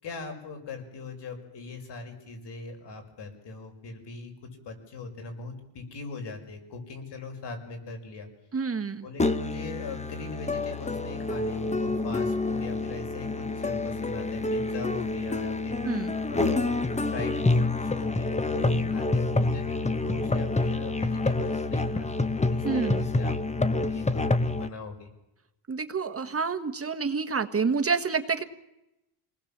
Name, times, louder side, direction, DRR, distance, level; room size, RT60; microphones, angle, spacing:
voice 1, 0.0-8.3 9.0-25.1, left 3 dB, 60° left, 4 dB, 6.0 m, -40 dB
voice 2, 8.5-9.1 15.8-16.1 22.6-23.0 25.7-28.4, right 5 dB, 30° right, 8 dB, 1.5 m, -28 dB
Musical instrument, 9.2-24.7, left 2 dB, 15° left, 1.2 m, -27 dB
28.0 x 20.0 x 7.4 m, 0.91 s
cardioid pair, 115°, 47 cm